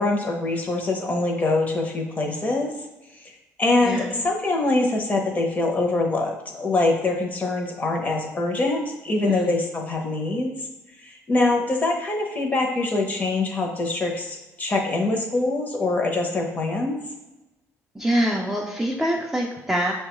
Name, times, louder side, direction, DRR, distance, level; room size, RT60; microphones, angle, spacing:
voice 1, 0.0-2.7 3.2-3.3 3.6-10.6 11.0-17.0, left 2 dB, 25° left, 1 dB, 0.7 m, -24 dB
voice 2, 3.8-4.1 9.2-9.5 17.9-19.9, equal, 5° right, -2 dB, 0.4 m, -25 dB
6.2 x 2.2 x 3.0 m, 1.0 s
cardioid pair, 145°, 6 cm